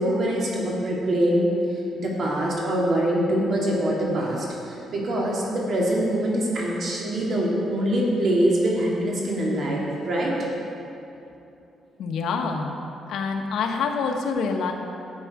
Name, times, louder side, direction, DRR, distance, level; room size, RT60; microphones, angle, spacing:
voice 1, 0.0-1.5 1.9-10.3, right 1 dB, 50° right, -3 dB, 2.1 m, -24 dB
voice 2, 12.0-12.7 13.1-14.7, left 5 dB, 75° left, 3 dB, 1.0 m, -26 dB
10.5 x 7.5 x 4.7 m, 2.8 s
cardioid pair, 130°, 0 cm